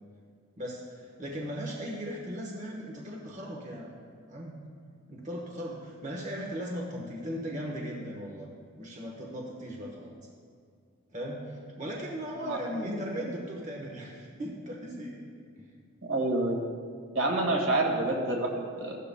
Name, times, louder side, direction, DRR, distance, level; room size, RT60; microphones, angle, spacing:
voice 1, 0.6-3.9 4.3-4.6 5.1-8.5 8.8-10.1 11.1-15.2 15.6-15.7, equal, 35° right, -2 dB, 1.1 m, -38 dB
voice 2, 12.4-13.0 16.0-16.6 17.2-19.0, right 2 dB, 70° right, 0 dB, 1.8 m, -28 dB
15.5 x 12.0 x 2.2 m, 2.2 s
head